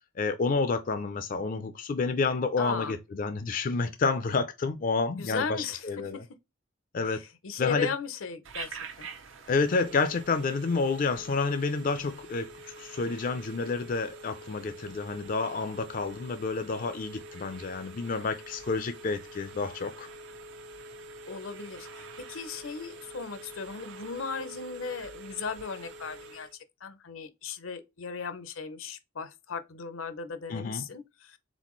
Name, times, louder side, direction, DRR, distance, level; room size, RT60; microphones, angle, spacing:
voice 1, 0.2-6.2 6.9-7.2 7.6-7.9 9.5-12.5 12.8-20.1 30.5-30.8, left 4 dB, 40° left, 0.4 m, -29 dB
voice 2, 2.6-3.0 5.2-6.3 7.0-9.1 21.3-26.5 26.8-31.4, left 5 dB, 80° left, 0.7 m, -37 dB
Telephone, 8.4-26.5, right 2 dB, 65° right, 0.7 m, -46 dB
4.1 x 3.8 x 3.1 m
head